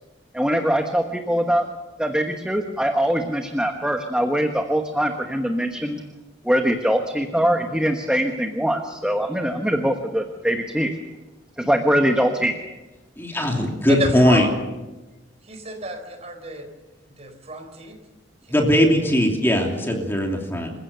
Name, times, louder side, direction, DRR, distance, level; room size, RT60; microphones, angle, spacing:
voice 1, 0.3-1.7 2.0-6.0 6.5-10.9 11.6-12.5, equal, 5° right, 4 dB, 1.1 m, -22 dB
voice 2, 13.2-14.5 18.5-20.7, equal, 10° left, 1 dB, 2.9 m, -19 dB
voice 3, 13.9-14.5 15.4-16.7 17.2-18.0 18.4-18.5, right 1 dB, 35° right, 6 dB, 4.1 m, -30 dB
27.5 x 15.5 x 6.9 m, 1.1 s
head